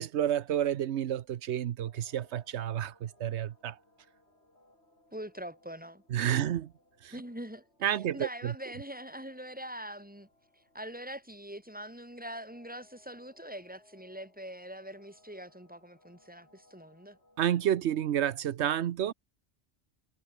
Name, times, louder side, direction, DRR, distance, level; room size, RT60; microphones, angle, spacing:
voice 1, 0.0-3.8 6.1-6.7 7.0-7.1 7.8-8.5 17.4-19.1, right 10 dB, 85° right, 1.0 m, -30 dB
sound 1, 1.9-18.5, left 1 dB, 75° left, 7.6 m, -66 dB
voice 2, 5.1-6.0 7.1-10.3 10.7-17.2, equal, 10° right, 4.1 m, -43 dB
omnidirectional pair, 1.1 m